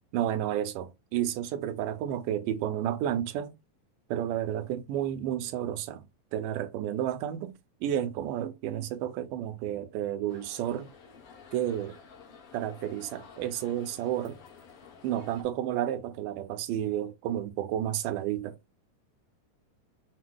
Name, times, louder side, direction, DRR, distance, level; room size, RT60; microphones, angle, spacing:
voice 1, 0.1-3.6 4.1-6.0 6.3-7.5 7.8-10.9 11.5-12.0 12.5-14.4 15.0-18.6, right 11 dB, 80° right, 2.1 m, -31 dB
sound 1, 10.3-15.4, left 6 dB, 60° left, 1.6 m, -52 dB
5.9 x 2.2 x 3.5 m
omnidirectional pair, 3.8 m